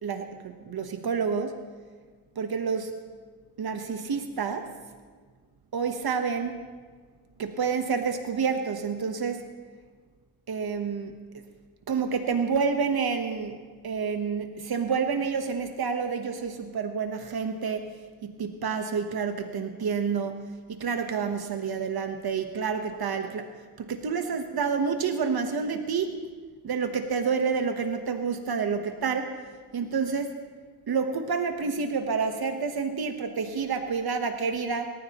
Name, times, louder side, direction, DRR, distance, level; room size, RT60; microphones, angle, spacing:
voice 1, 0.0-1.6 2.4-2.9 3.6-4.7 5.7-6.6 7.4-9.4 10.5-11.1 11.9-17.9 18.2-23.5 23.8-26.1 26.6-29.4 29.7-30.4 30.9-34.9, right 5 dB, 65° right, 6 dB, 1.1 m, -29 dB
25.5 x 14.0 x 3.0 m, 1.5 s
cardioid pair, 85°, 40 cm